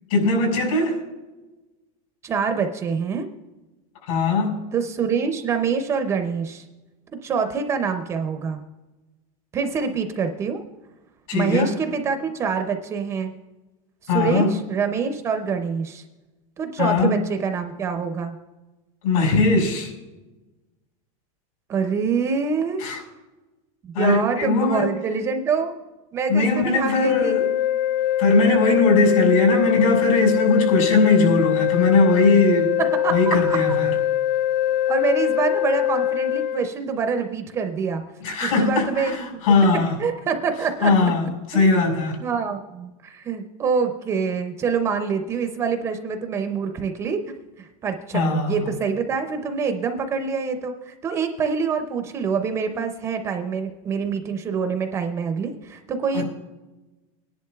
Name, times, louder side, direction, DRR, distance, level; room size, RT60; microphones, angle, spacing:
voice 1, 0.1-1.0 4.1-4.6 11.3-11.7 14.1-14.5 16.8-17.2 19.0-19.9 22.8-23.0 23.9-24.9 26.3-27.5 28.2-32.7 33.1-33.9 38.2-39.9 40.8-42.2 48.1-48.7 56.1-56.3, left 3 dB, 80° left, 0 dB, 4.8 m, -20 dB
voice 2, 2.2-3.3 4.7-6.6 7.2-8.6 9.5-10.6 11.3-13.3 14.1-16.0 16.6-18.4 21.7-22.8 23.8-25.7 26.1-27.3 32.8-33.6 34.9-38.0 38.4-39.4 39.8-41.1 41.5-47.2 47.6-56.3, right 5 dB, 15° right, 7 dB, 0.4 m, -26 dB
sound 1, 27.0-36.7, left 12 dB, 55° left, 0.7 m, -22 dB
23.5 x 10.5 x 2.3 m, 1.1 s
supercardioid pair, 175°, 18 cm